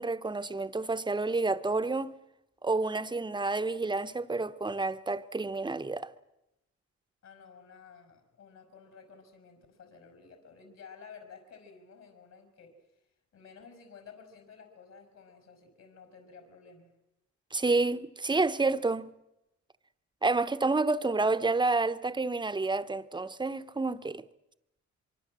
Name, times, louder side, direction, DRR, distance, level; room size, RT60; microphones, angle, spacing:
voice 1, 0.0-2.1 2.6-6.1 17.5-19.1 20.2-24.2, right 3 dB, 15° right, 1.1 m, -29 dB
voice 2, 7.2-13.1 13.3-16.9, left 5 dB, 60° left, 5.5 m, -53 dB
24.5 x 24.0 x 7.6 m
cardioid pair, 90°, 30 cm